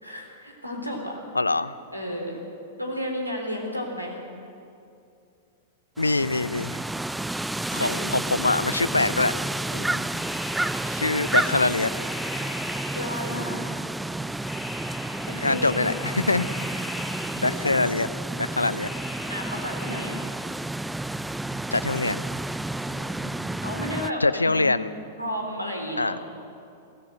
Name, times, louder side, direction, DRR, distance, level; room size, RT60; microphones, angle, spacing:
voice 1, 0.0-1.2 1.9-2.4 2.8-4.2 7.8-8.1 8.8-9.2 9.7-9.9 12.9-13.8 15.2-16.1 17.4-17.7 19.3-20.2 22.8-24.8 25.2-26.1, equal, 90° right, 1 dB, 4.0 m, -33 dB
voice 2, 1.3-1.8 6.0-6.8 7.7-9.3 10.9-11.9 15.4-16.5 17.4-18.1 18.3-18.9 21.7-22.2 24.2-24.9 26.0-26.2, left 3 dB, 80° left, 16 dB, 0.7 m, -24 dB
sound 1, 6.0-24.1, right 2 dB, 5° right, 0.4 m, -31 dB
sound 2, 10.2-13.6 14.4-17.8 18.8-20.1, left 1 dB, 15° left, 4.6 m, -40 dB
21.5 x 17.0 x 7.9 m, 2.5 s
figure-of-eight pair, 95°, 0 cm